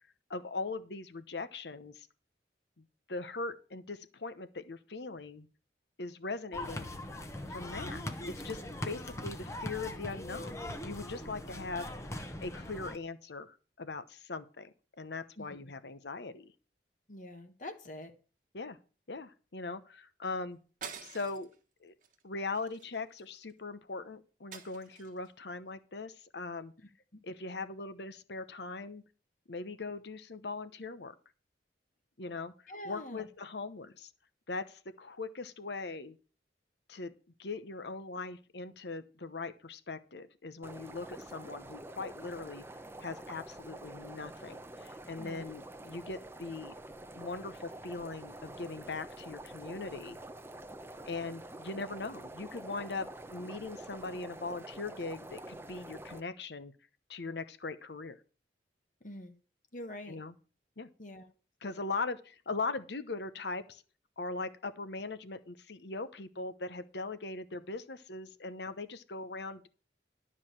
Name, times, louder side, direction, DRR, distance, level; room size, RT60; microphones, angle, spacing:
voice 1, 0.3-2.1 2.8-5.5 6.0-6.9 7.5-8.0 8.3-10.6 10.8-11.9 12.4-16.5 18.5-18.8 19.1-20.6 21.0-21.5 21.8-21.9 22.2-26.7 27.2-29.0 29.5-31.1 32.2-32.5 32.8-34.1 34.5-36.2 36.9-37.1 37.4-42.6 43.0-46.7 47.1-50.2 51.0-56.7 57.1-58.2 60.1-60.3 60.8-60.9 61.6-63.8 64.2-69.7, left 3 dB, 70° left, 0.9 m, -40 dB
sound 1, 6.5-13.0, left 1 dB, 15° left, 1.0 m, -41 dB
voice 2, 17.1-18.1 27.1-27.2 32.7-33.3 45.2-45.5 59.0-59.4 59.7-60.2 61.0-61.3, left 1 dB, 45° left, 1.3 m, -45 dB
sound 2, 20.8-21.6 22.0-22.2 22.5-23.5 24.5-25.3, right 6 dB, 45° right, 1.3 m, -47 dB
sound 3, 40.6-56.2, right 1 dB, 15° right, 0.7 m, -47 dB
12.0 x 4.9 x 7.3 m
head